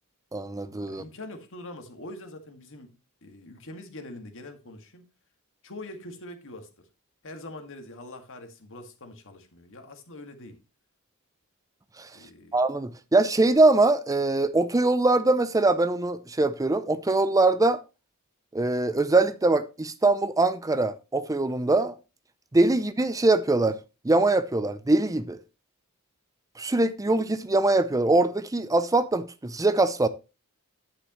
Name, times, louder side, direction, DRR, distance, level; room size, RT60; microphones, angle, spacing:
voice 1, 0.3-1.0 12.0-12.1 12.5-17.8 18.5-21.9 22.5-23.8 24.0-25.4 26.6-30.1, right 2 dB, 15° right, 0.5 m, -22 dB
voice 2, 0.9-2.9 3.2-5.0 5.6-6.7 7.2-10.6 12.1-12.6, left 1 dB, 60° left, 1.9 m, -43 dB
9.9 x 8.8 x 3.0 m
head